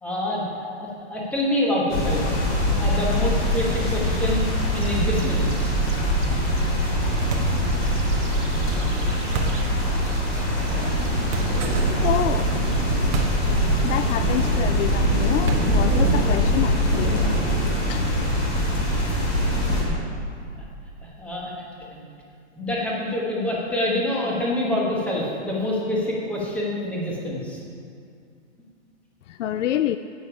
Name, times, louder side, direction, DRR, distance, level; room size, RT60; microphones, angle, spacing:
voice 1, 0.0-0.5 0.8-2.2 2.8-5.7 21.0-21.5 21.9-22.0 22.6-27.6, left 1 dB, 5° left, -4 dB, 1.2 m, -26 dB
sound 1, 1.9-19.8, left 1 dB, 40° left, 3.3 m, -23 dB
sound 2, 4.8-16.4, right 5 dB, 90° right, 1.6 m, -31 dB
sound 3, 7.3-7.7 9.3-9.7 11.3-11.7 13.1-13.5 13.8-13.9 15.5-15.9, right 4 dB, 25° right, 0.9 m, -29 dB
voice 2, 12.0-12.5 13.4-13.6 13.8-17.2 17.9-18.1 18.9-19.0 29.3-30.0, left 11 dB, 80° left, 11 dB, 0.5 m, -27 dB
11.5 x 8.7 x 5.0 m, 2.4 s
hypercardioid pair, 170°, 36 cm